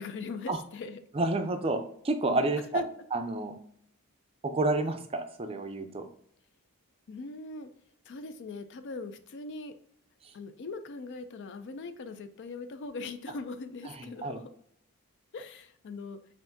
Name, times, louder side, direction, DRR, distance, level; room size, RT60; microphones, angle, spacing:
voice 1, 0.0-1.0 2.7-2.8 7.1-7.7 8.1-9.7 10.3-14.5 15.3-16.2, left 3 dB, 55° left, 9 dB, 0.4 m, -40 dB
voice 2, 1.1-2.8 3.1-3.6 4.4-6.1 10.2-10.3 14.0-14.4, right 2 dB, 25° right, 7 dB, 0.4 m, -30 dB
5.7 x 2.6 x 2.6 m, 0.64 s
head